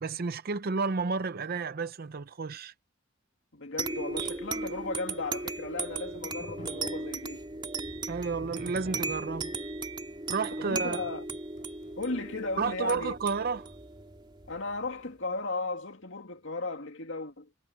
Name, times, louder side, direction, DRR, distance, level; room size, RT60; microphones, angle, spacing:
voice 1, 0.0-2.7 8.1-9.5 10.3-11.0 12.6-13.7, right 4 dB, 50° right, 0.6 m, -31 dB
voice 2, 3.5-7.5 10.6-11.3 12.0-13.1 14.5-17.5, left 3 dB, 65° left, 2.5 m, -36 dB
sound 1, 3.8-14.9, right 3 dB, 25° right, 2.9 m, -37 dB
sound 2, 5.6-12.8, left 1 dB, 40° left, 4.7 m, -52 dB
head